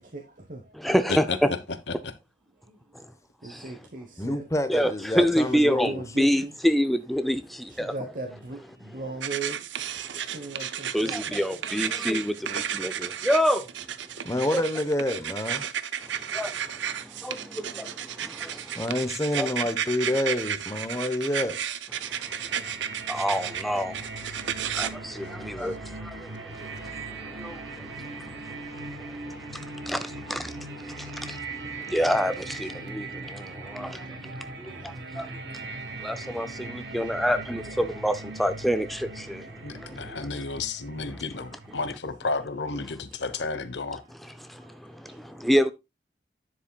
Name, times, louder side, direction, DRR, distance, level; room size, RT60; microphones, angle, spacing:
voice 1, 0.0-0.9 2.7-3.0 3.4-4.4 5.6-6.5 7.7-11.4 31.0-32.0 32.6-37.2 39.2-40.2 41.2-41.3 43.1-43.2 44.4-45.5, right 2 dB, 45° right, 1.1 m, -42 dB
voice 2, 0.8-1.5 4.7-7.4 7.8-7.9 10.9-12.3 12.8-12.9 13.3-13.6 16.4-16.5 19.4-19.5 23.1-23.9 24.8-24.9 25.6-25.7 31.9-32.3 36.0-36.5 36.9-38.1 38.4-38.9 45.5-45.7, equal, ahead, 0.5 m, -24 dB
voice 3, 4.2-6.0 14.2-15.7 18.7-21.6, left 1 dB, 15° left, 1.0 m, -28 dB
sound 1, 9.2-24.9, right 9 dB, 90° right, 0.7 m, -33 dB
sound 2, 22.0-41.7, right 3 dB, 75° right, 1.5 m, -40 dB
voice 4, 39.6-44.0, left 3 dB, 75° left, 1.0 m, -32 dB
10.0 x 7.2 x 2.3 m
head